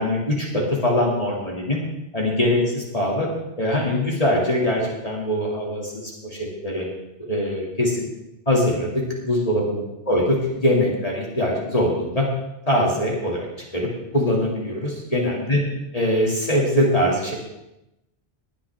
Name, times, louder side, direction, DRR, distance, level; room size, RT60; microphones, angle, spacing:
voice 1, 0.0-1.8 2.1-3.3 3.6-6.0 6.3-6.9 7.2-8.0 8.5-12.3 12.7-13.4 13.7-13.9 14.1-15.6 15.9-17.3, left 1 dB, 30° left, -3 dB, 2.7 m, -22 dB
19.5 x 9.8 x 3.6 m, 0.91 s
omnidirectional pair, 1.2 m